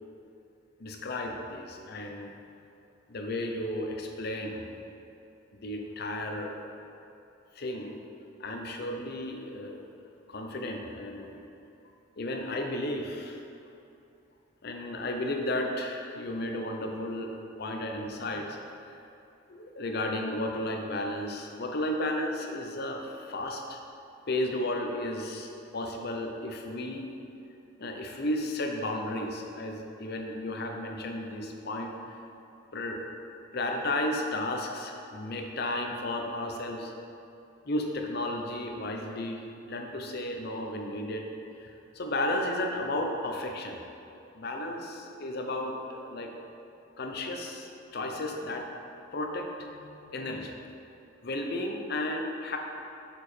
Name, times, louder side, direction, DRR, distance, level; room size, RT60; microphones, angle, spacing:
voice 1, 0.8-2.3 3.1-4.9 5.6-6.6 7.5-8.0 8.4-9.8 10.3-11.5 12.2-13.4 14.6-19.0 19.5-23.8 24.3-27.1 27.8-32.2 32.7-33.0 33.5-36.9 37.6-39.4 39.7-41.3 41.6-43.8 44.4-46.3 47.0-48.7 49.1-50.5 51.2-52.6, left 1 dB, 55° left, 2 dB, 0.7 m, -33 dB
7.0 x 4.9 x 4.4 m, 2.8 s
head